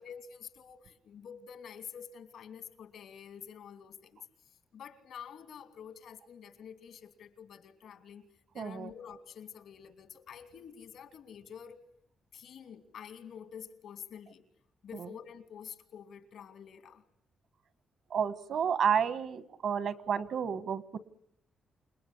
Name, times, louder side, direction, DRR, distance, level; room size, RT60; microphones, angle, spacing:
voice 1, 0.0-4.2 4.7-8.3 8.5-11.8 12.3-14.4 14.8-17.0, left 7 dB, 75° left, 2.8 m, -48 dB
voice 2, 8.5-8.9 14.9-15.1 18.1-21.0, right 7 dB, 65° right, 1.4 m, -31 dB
29.0 x 20.5 x 9.9 m
cardioid pair, 125°, 0 cm